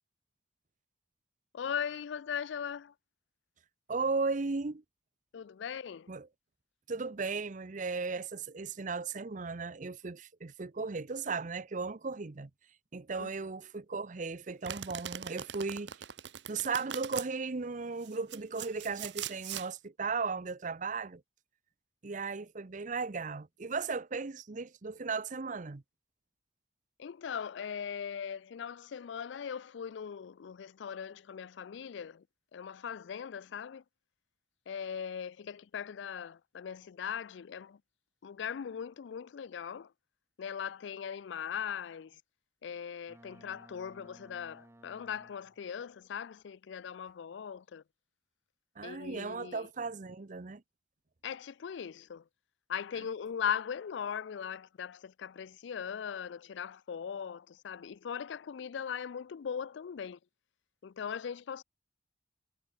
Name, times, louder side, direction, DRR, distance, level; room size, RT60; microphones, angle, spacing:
voice 1, 1.5-2.9 5.3-6.1 13.1-13.3 27.0-32.2 32.5-33.8 34.7-37.8 38.2-39.9 40.4-42.2 42.6-47.8 48.8-49.7 51.2-52.2 52.7-60.2 60.8-61.6, left 7 dB, 75° left, 0.4 m, -39 dB
voice 2, 3.9-4.8 6.1-6.3 6.9-12.5 12.9-15.9 16.5-21.2 22.0-25.8 48.8-50.6, right 4 dB, 45° right, 0.7 m, -36 dB
Domestic sounds home sounds, 14.6-17.3 18.0-19.7, right 9 dB, 70° right, 0.9 m, -41 dB
Boat Water vehicle, 43.1-45.8, right 1 dB, 15° right, 0.9 m, -58 dB
head